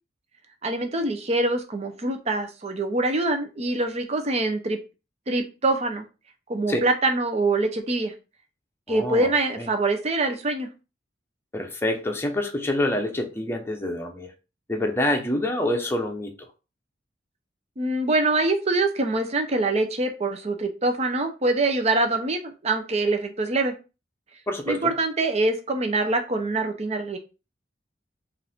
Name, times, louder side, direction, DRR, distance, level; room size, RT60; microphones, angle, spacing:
voice 1, 0.6-4.8 5.3-6.0 6.5-8.1 8.9-10.7 17.8-23.7 24.7-27.2, right 2 dB, 35° right, 0.8 m, -24 dB
voice 2, 8.9-9.7 11.5-14.3 14.7-16.3 24.5-24.9, left 1 dB, 15° left, 0.8 m, -27 dB
5.2 x 2.6 x 3.6 m
head